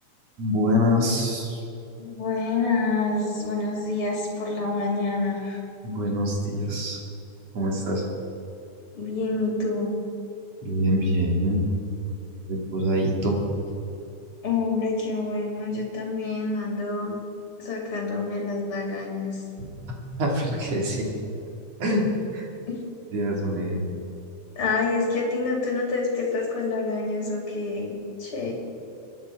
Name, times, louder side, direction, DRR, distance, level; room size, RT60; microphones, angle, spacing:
voice 1, 0.4-1.6 5.8-7.0 7.5-8.0 10.6-11.6 12.5-13.4 19.6-19.7 20.2-21.1 21.8-22.5 23.1-23.8, equal, 60° right, -1 dB, 3.5 m, -25 dB
voice 2, 2.0-5.6 9.0-9.9 14.4-17.2 17.6-19.4 24.6-27.9 28.2-28.5, left 3 dB, 45° left, -1 dB, 3.6 m, -27 dB
24.0 x 10.5 x 4.7 m, 2.7 s
omnidirectional pair, 3.4 m